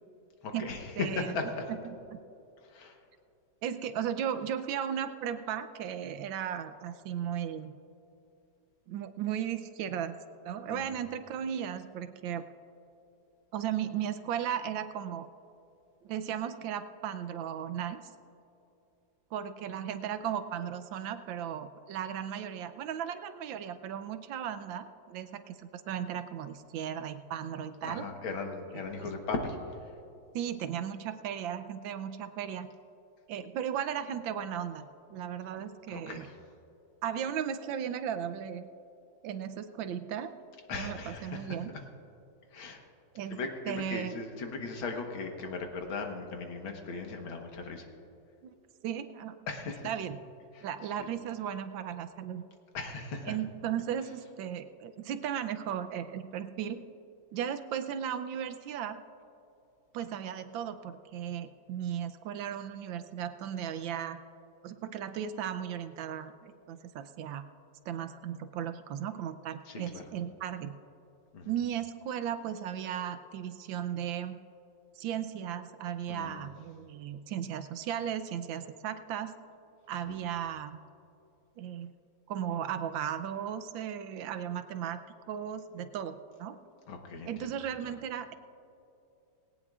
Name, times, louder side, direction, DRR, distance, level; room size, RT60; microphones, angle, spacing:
voice 1, 0.4-1.6 2.7-3.0 10.7-11.0 27.8-29.6 35.9-36.3 40.7-41.5 42.5-42.8 43.3-47.9 49.5-49.9 50.6-50.7 52.7-53.4 69.7-70.0 71.3-71.5 76.1-76.5 80.1-80.2 86.9-87.3, left 3 dB, 85° left, 3 dB, 2.1 m, -37 dB
voice 2, 1.0-1.3 1.7-1.8 2.1-2.2 3.6-7.7 8.9-10.2 10.4-12.4 13.5-15.3 16.0-18.0 19.3-28.1 28.7-29.1 30.3-32.7 33.3-34.8 35.1-36.3 37.0-38.7 39.2-40.3 40.7-41.7 43.1-43.4 43.7-44.2 48.4-48.5 48.8-49.3 49.8-50.2 50.6-52.4 53.2-56.8 57.3-59.0 59.9-64.2 64.6-67.4 67.9-70.7 71.5-74.4 75.0-79.3 79.9-80.8 81.6-81.9 82.3-86.6 87.3-88.3, right 9 dB, 75° right, 10 dB, 1.4 m, -36 dB
19.0 x 17.5 x 2.4 m, 2.8 s
omnidirectional pair, 2.2 m